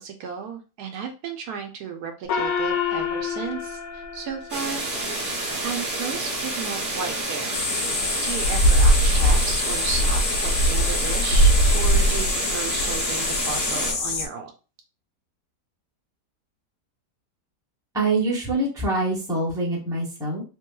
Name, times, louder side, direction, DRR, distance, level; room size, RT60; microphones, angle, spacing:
voice 1, 0.0-4.8 5.6-7.6 8.2-14.5, right 6 dB, 75° right, 4 dB, 1.0 m, -34 dB
Gong, 2.3-5.2, left 7 dB, 70° left, 0.9 m, -29 dB
sound 1, 4.5-13.9, right 2 dB, 25° right, 1.2 m, -29 dB
sound 2, 7.5-14.3, equal, 85° left, 1.2 m, -21 dB
voice 2, 17.9-20.4, right 2 dB, 5° right, -4 dB, 0.7 m, -25 dB
3.3 x 2.9 x 2.2 m, 0.33 s
omnidirectional pair, 1.8 m